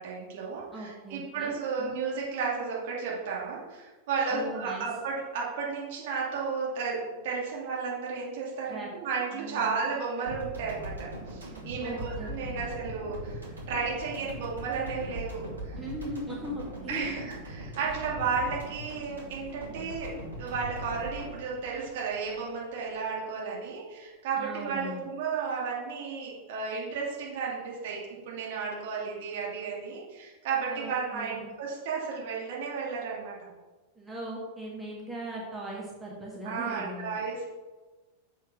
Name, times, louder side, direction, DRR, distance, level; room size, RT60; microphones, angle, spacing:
voice 1, 0.0-13.4 13.7-15.4 15.7-15.8 16.9-33.5 36.4-37.5, right 5 dB, 50° right, -4 dB, 2.7 m, -33 dB
voice 2, 0.7-2.0 4.3-4.9 8.7-8.9 9.3-9.8 11.8-12.6 15.8-17.1 24.4-25.1 30.7-31.5 34.0-37.2, right 1 dB, 10° right, -4 dB, 1.6 m, -39 dB
sound 1, 10.3-22.7, equal, 75° right, 2.4 m, -40 dB
7.1 x 4.5 x 6.1 m, 1.2 s
figure-of-eight pair, 90°, 0 cm